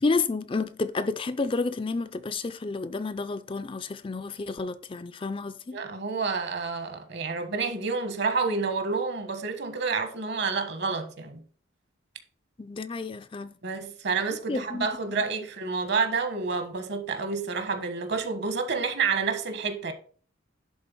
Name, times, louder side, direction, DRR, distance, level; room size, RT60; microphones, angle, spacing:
voice 1, 0.0-5.8 12.6-13.5 14.5-14.9, left 3 dB, 25° left, 0.4 m, -30 dB
voice 2, 5.7-11.4 13.6-19.9, right 4 dB, 55° right, 1.4 m, -29 dB
11.0 x 3.9 x 5.4 m
head